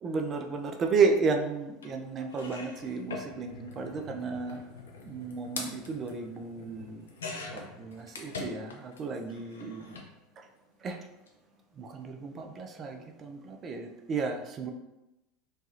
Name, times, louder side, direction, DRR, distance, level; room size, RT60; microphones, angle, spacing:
voice 1, 0.0-4.6 5.0-7.1 7.5-10.0 10.8-11.0 11.8-14.7, right 4 dB, 35° right, 4 dB, 0.4 m, -32 dB
sound 1, 1.8-1.9 2.3-9.0 9.3-10.1 11.1-11.3 11.5-11.6, left 3 dB, 80° left, 0.5 m, -43 dB
3.2 x 2.3 x 2.7 m, 0.97 s
hypercardioid pair, 80°, 0 cm